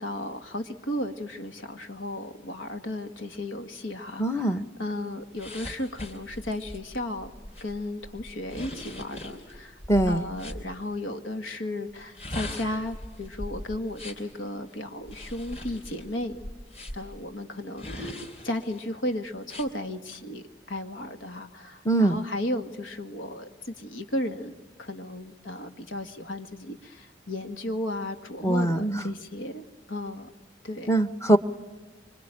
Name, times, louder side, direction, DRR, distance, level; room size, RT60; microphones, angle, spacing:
voice 1, 0.0-7.3 7.6-9.8 10.1-16.4 16.9-30.3 30.6-30.9, left 1 dB, 85° left, 7 dB, 1.9 m, -34 dB
voice 2, 4.2-4.6 9.9-10.2 21.8-22.2 28.4-29.1 30.9-31.4, right 1 dB, 15° left, 9 dB, 1.0 m, -22 dB
sound 1, 5.4-10.6 12.0-14.3 15.0-17.2 17.8-18.8 19.4-19.7, left 1 dB, 35° left, 4.2 m, -40 dB
26.0 x 25.0 x 9.0 m, 1.3 s
head